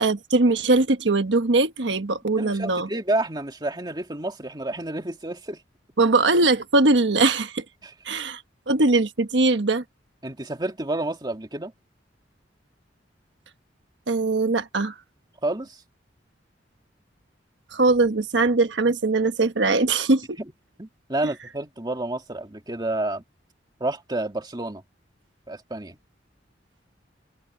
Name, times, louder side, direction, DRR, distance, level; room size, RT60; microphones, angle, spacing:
voice 1, 0.0-2.9 6.0-7.6 8.1-9.8 14.1-14.9 17.7-20.3, right 3 dB, 80° right, 1.2 m, -21 dB
voice 2, 2.4-5.6 7.8-7.9 10.2-11.7 15.4-15.8 20.4-20.5 20.8-23.2 23.8-24.8 25.5-26.0, right 2 dB, 25° right, 2.2 m, -29 dB
head